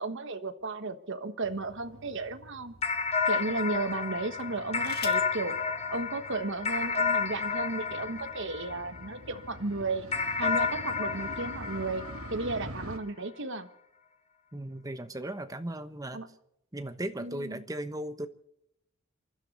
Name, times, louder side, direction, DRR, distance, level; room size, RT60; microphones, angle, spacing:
voice 1, 0.0-2.7 3.3-5.6 5.9-10.1 10.4-12.0 12.3-13.7 16.1-16.3 17.2-17.6, right 3 dB, 60° right, 9 dB, 1.3 m, -34 dB
sound 1, 0.6-1.8 2.6-2.7 4.3-5.4 6.5-6.6 6.9-7.3, left 9 dB, 45° left, 1.8 m, -46 dB
Motorcycle, 1.4-13.0, right 1 dB, 80° right, 1.9 m, -47 dB
sound 2, 2.8-9.4 10.1-12.9, left 5 dB, 30° left, 1.1 m, -31 dB
voice 2, 14.5-16.2 16.7-18.3, right 1 dB, 15° right, 10 dB, 1.1 m, -37 dB
28.0 x 12.0 x 4.2 m, 0.78 s
head